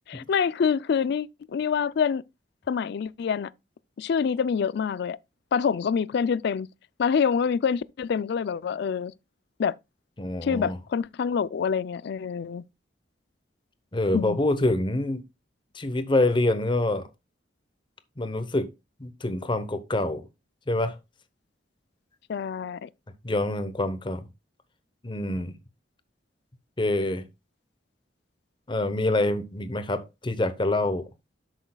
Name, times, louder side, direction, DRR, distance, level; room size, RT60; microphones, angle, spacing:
voice 1, 0.1-2.2 2.7-3.5 4.0-5.2 5.5-6.7 7.0-9.1 9.6-9.7 10.4-12.6 14.1-14.4 22.3-22.9, left 6 dB, 65° left, 0.3 m, -26 dB
voice 2, 10.2-10.8 13.9-15.2 15.7-17.1 18.2-18.7 19.0-20.3 20.7-20.9 23.2-24.2 25.0-25.5 26.8-27.2 28.7-31.0, left 2 dB, 25° left, 0.8 m, -26 dB
12.0 x 6.3 x 2.3 m
head